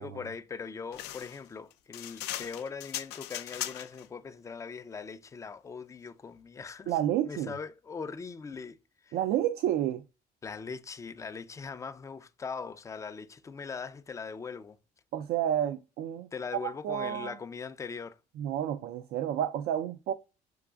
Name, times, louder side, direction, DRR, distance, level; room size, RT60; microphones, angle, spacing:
voice 1, 0.0-6.9 7.3-8.8 9.0-9.2 10.4-14.8 16.3-18.2, left 5 dB, 20° left, 0.3 m, -40 dB
sound 1, 0.9-4.1, left 13 dB, 85° left, 0.4 m, -39 dB
voice 2, 6.9-7.6 9.1-10.0 15.1-16.3 16.6-17.4 18.4-20.1, right 11 dB, 75° right, 0.4 m, -30 dB
4.6 x 2.4 x 2.2 m
cardioid pair, 110°, 17 cm